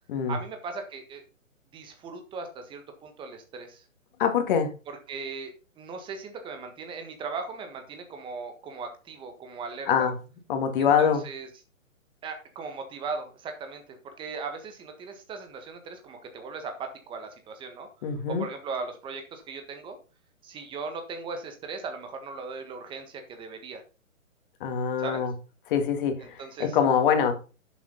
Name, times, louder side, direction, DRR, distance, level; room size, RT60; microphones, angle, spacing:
voice 1, 0.3-1.2 1.7-3.8 5.1-10.1 10.8-11.5 12.2-20.0 20.4-23.8 25.0-25.2 26.2-26.8, right 4 dB, 10° right, 6 dB, 1.5 m, -38 dB
voice 2, 4.2-4.7 9.9-10.1 10.5-11.2 18.0-18.5 24.6-25.3 25.7-27.3, left 7 dB, 40° left, 6 dB, 2.1 m, -24 dB
11.0 x 7.1 x 4.0 m, 0.34 s
hypercardioid pair, 140°, 41 cm